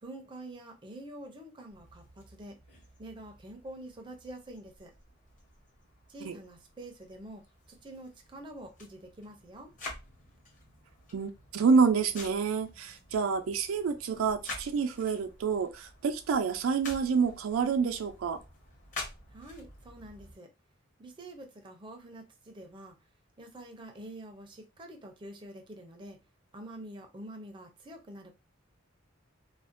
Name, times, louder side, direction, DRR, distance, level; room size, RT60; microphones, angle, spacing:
voice 1, 0.0-2.6 3.0-4.9 6.1-9.7 19.3-20.5 21.0-23.0 23.4-26.2 26.5-28.3, right 1 dB, 25° right, 0.5 m, -46 dB
sound 1, 1.7-20.4, left 2 dB, 40° left, 0.9 m, -49 dB
voice 2, 11.1-18.4, right 5 dB, 90° right, 0.4 m, -28 dB
2.5 x 2.1 x 2.4 m
head